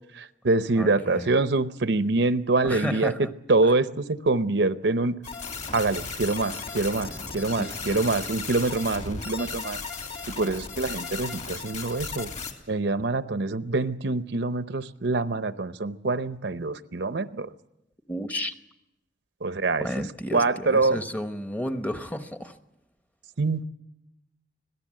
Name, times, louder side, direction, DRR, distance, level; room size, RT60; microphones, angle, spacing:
voice 1, 0.1-5.2 5.7-9.8 10.3-12.3 12.7-17.5 19.4-19.9 20.3-21.0 23.4-23.6, right 3 dB, 65° right, 12 dB, 0.8 m, -25 dB
voice 2, 0.7-1.3 2.6-3.3 7.1-8.2 18.1-18.5 19.8-22.6, equal, 10° left, 8 dB, 1.0 m, -33 dB
sound 1, 5.2-12.5, left 4 dB, 40° left, 2.9 m, -36 dB
25.5 x 18.0 x 7.6 m, 0.87 s
head